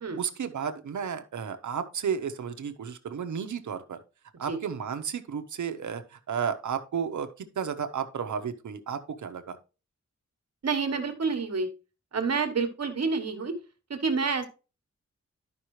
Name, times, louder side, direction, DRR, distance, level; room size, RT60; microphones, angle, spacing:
voice 1, 0.2-4.0 4.4-9.6, right 7 dB, 85° right, 8 dB, 0.9 m, -33 dB
voice 2, 10.6-11.7 12.1-13.5 13.9-14.5, right 4 dB, 60° right, 6 dB, 1.3 m, -28 dB
12.0 x 5.4 x 3.1 m, 0.32 s
wide cardioid pair, 150°, 29 cm